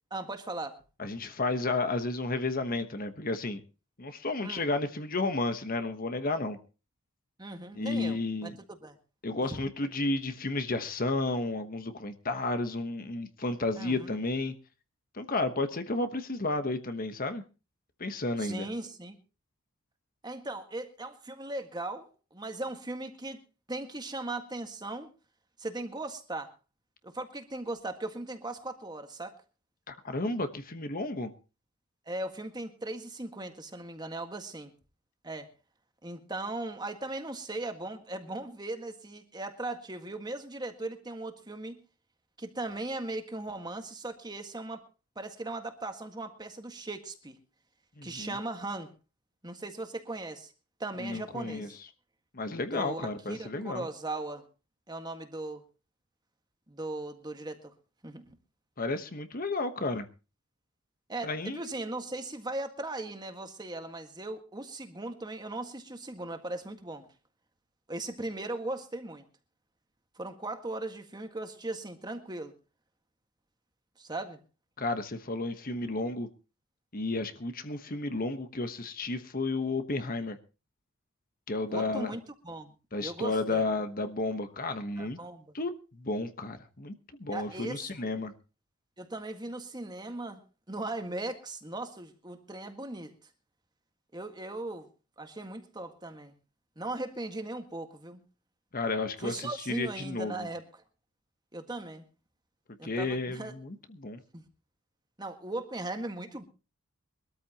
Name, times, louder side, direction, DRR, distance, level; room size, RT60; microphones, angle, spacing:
voice 1, 0.1-0.8 4.4-4.7 7.4-9.0 13.8-14.2 18.4-19.2 20.2-23.4 23.7-25.1 25.6-26.5 27.0-29.3 32.1-34.7 35.2-35.5 36.0-41.8 42.4-44.8 45.1-47.4 48.0-48.9 49.4-50.5 50.8-51.8 52.7-54.4 54.9-55.6 56.7-57.7 58.0-58.3 61.1-67.1 67.9-69.3 70.2-72.5 74.0-74.4 81.7-82.7 83.0-83.6 85.0-85.5 87.3-88.2 89.0-90.4 90.7-93.1 94.1-94.9 95.2-96.4 96.7-98.2 99.2-100.8 101.5-102.0 102.8-103.5 104.3-104.5 105.2-106.4, right 2 dB, 20° right, 1.7 m, -38 dB
voice 2, 1.0-3.6 4.0-6.6 7.7-8.5 9.2-14.5 15.1-17.4 18.0-18.6 29.9-31.3 48.0-48.4 51.0-51.7 52.3-53.9 58.8-60.1 61.2-61.7 74.8-76.3 76.9-80.4 81.5-82.1 82.9-85.2 85.5-86.9 87.2-88.3 98.7-100.5 102.8-104.2, left 2 dB, 40° left, 1.1 m, -32 dB
23.0 x 13.5 x 2.9 m
head